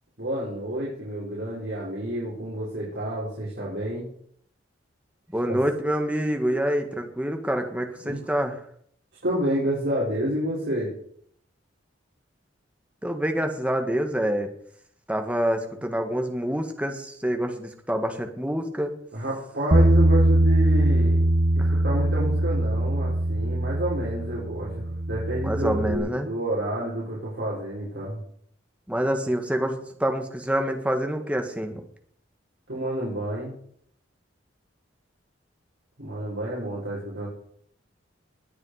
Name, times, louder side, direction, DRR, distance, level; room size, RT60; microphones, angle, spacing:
voice 1, 0.2-4.1 5.5-5.6 8.0-8.2 9.2-10.9 19.1-21.2 21.6-28.2 32.7-33.5 36.0-37.3, right 1 dB, 65° right, -7 dB, 5.5 m, -29 dB
voice 2, 5.3-8.6 13.0-14.5 15.1-18.9 21.6-21.7 25.4-26.3 28.9-31.8, equal, 5° right, 5 dB, 1.8 m, -26 dB
Bass guitar, 19.7-26.0, right 1 dB, 45° right, 1.6 m, -22 dB
21.0 x 9.1 x 5.0 m, 0.65 s
head